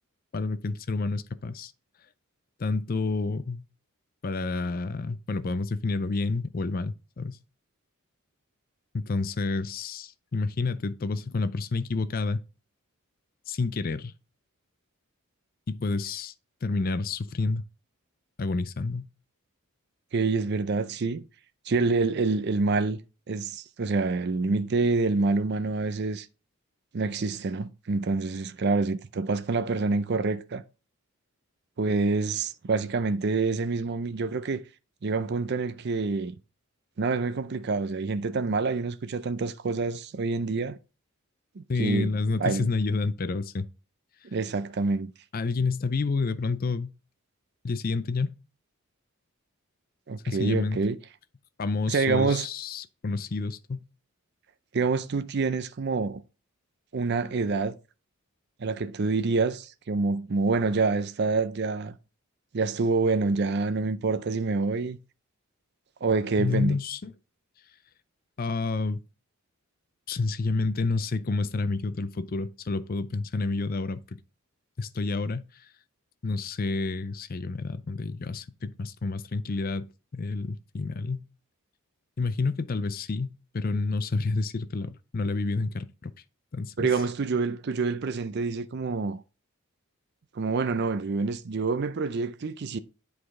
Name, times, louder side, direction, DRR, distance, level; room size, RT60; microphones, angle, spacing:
voice 1, 0.3-1.7 2.6-3.6 4.2-7.4 8.9-12.4 13.5-14.1 15.7-16.3 16.6-17.6 18.4-19.1 41.7-43.7 45.3-46.9 47.6-48.4 50.3-50.8 51.6-53.8 66.4-67.1 68.4-69.0 70.1-74.2 74.8-75.7 76.2-79.9 80.1-81.3 82.2-86.1 86.5-86.9, left 3 dB, 40° left, 0.5 m, -29 dB
voice 2, 20.1-21.2 21.7-23.0 23.3-26.3 26.9-30.6 31.8-34.6 35.0-36.3 37.0-40.8 41.6-42.1 42.4-42.7 44.3-45.1 50.1-51.0 51.9-52.5 54.7-56.2 56.9-57.7 58.6-62.0 62.5-65.0 66.0-66.8 86.8-89.2 90.3-92.8, right 3 dB, 50° right, 0.5 m, -27 dB
8.4 x 4.8 x 3.7 m
head